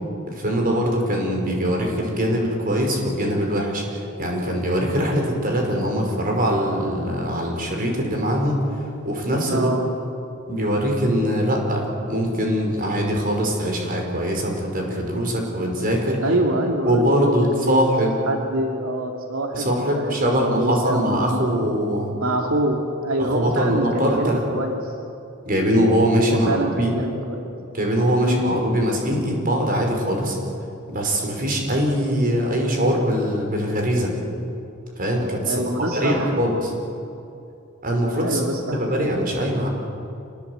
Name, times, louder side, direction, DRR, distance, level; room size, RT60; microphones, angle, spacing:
voice 1, 0.3-8.6 9.0-9.7 10.5-16.2 16.8-18.2 19.5-22.1 23.2-24.4 25.5-26.5 26.8-26.9 27.7-30.4 30.9-34.1 35.0-36.7 37.8-38.4 38.7-39.7, equal, 45° right, 1 dB, 5.5 m, -22 dB
voice 2, 9.5-9.9 16.2-17.8 18.3-21.4 22.1-24.9 26.2-27.5 28.2-28.5 35.4-36.3 38.2-39.1, right 1 dB, 85° right, 1 dB, 2.4 m, -25 dB
26.5 x 20.0 x 8.2 m, 2.7 s
head